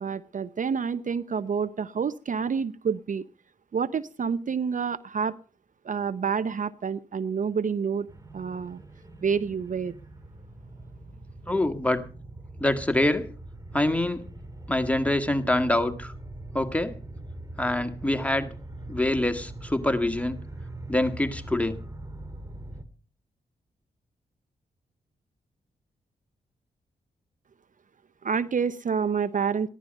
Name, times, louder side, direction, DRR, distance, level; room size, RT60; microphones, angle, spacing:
voice 1, 0.0-3.2 3.7-5.3 5.8-8.1 8.3-8.8 9.2-9.9 28.2-29.7, right 6 dB, 50° right, 17 dB, 0.7 m, -28 dB
sound 1, 8.1-22.8, right 1 dB, 20° right, 2.1 m, -42 dB
voice 2, 11.5-12.0 12.6-13.3 13.7-14.2 14.7-16.1 16.5-16.9 17.6-18.5 18.9-20.4 20.9-21.8, left 1 dB, 10° left, 8 dB, 1.8 m, -25 dB
15.5 x 11.0 x 5.3 m, 0.40 s
supercardioid pair, 45°, 17 cm